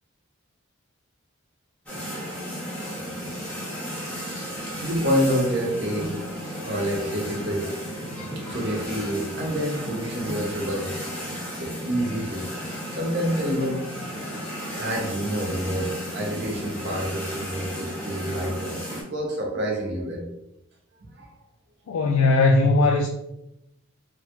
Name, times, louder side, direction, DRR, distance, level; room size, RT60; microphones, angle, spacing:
sound 1, 1.9-19.0, equal, 5° left, 0.9 m, -34 dB
voice 1, 2.8-3.3 3.6-7.8 8.4-10.9 11.6-12.4 12.9-13.8 14.7-20.2 21.2-21.3, equal, 55° right, 0.8 m, -28 dB
voice 2, 21.9-23.1, left 3 dB, 90° left, 0.3 m, -19 dB
3.1 x 2.2 x 2.9 m
head